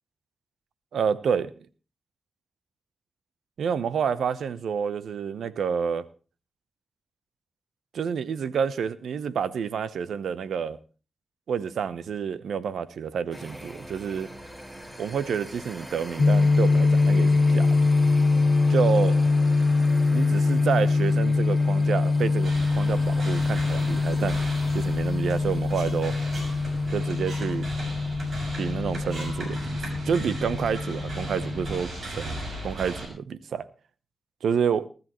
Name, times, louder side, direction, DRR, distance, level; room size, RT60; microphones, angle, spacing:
voice 1, 0.9-1.5 3.6-6.0 7.9-10.8 11.5-14.3 15.0-17.9 18.7-19.2 20.1-24.4 24.7-26.1 26.9-27.7 28.6-33.7 34.4-34.9, right 7 dB, 90° right, 16 dB, 0.8 m, -29 dB
sound 1, 13.3-28.1, right 1 dB, 20° right, 4.6 m, -42 dB
sound 2, 16.2-31.8, left 3 dB, 60° left, 1.5 m, -23 dB
sound 3, 22.4-33.1, right 1 dB, 70° right, 6.6 m, -37 dB
20.0 x 13.5 x 3.1 m, 0.35 s
cardioid pair, 50°, 0 cm